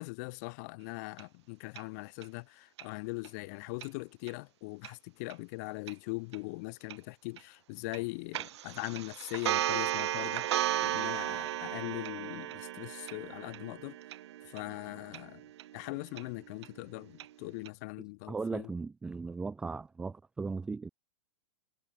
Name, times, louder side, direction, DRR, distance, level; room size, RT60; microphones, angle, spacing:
voice 1, 0.0-14.0 14.4-15.4 15.7-18.7, left 28 dB, 35° left, 2.8 m, -41 dB
sound 1, 1.2-1.3 1.8-1.9 2.2-2.3 2.8-2.9 3.2-3.3 3.8-3.9 4.3-4.4 4.8-4.9 5.3-5.4 5.9-6.0 6.3-6.4 6.9-7.0 7.4-7.5 7.9-8.0 8.3-17.3 17.7-17.8, right 13 dB, 60° right, 0.5 m, -35 dB
voice 2, 18.3-20.9, right 4 dB, 5° right, 0.6 m, -37 dB
supercardioid pair, 175°, 16 cm